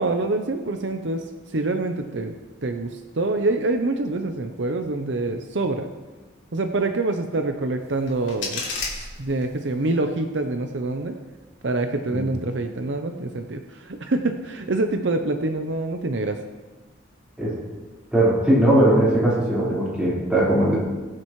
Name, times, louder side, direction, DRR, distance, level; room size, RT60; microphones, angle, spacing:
voice 1, 0.0-2.4 2.6-5.9 6.5-8.6 9.0-11.2 11.6-16.4, right 2 dB, 60° right, 6 dB, 0.7 m, -26 dB
sound 1, 7.8-9.8, left 4 dB, 65° left, 3.2 m, -33 dB
voice 2, 18.1-20.8, right 1 dB, 5° right, -9 dB, 4.4 m, -19 dB
22.0 x 7.6 x 3.2 m, 1.3 s
head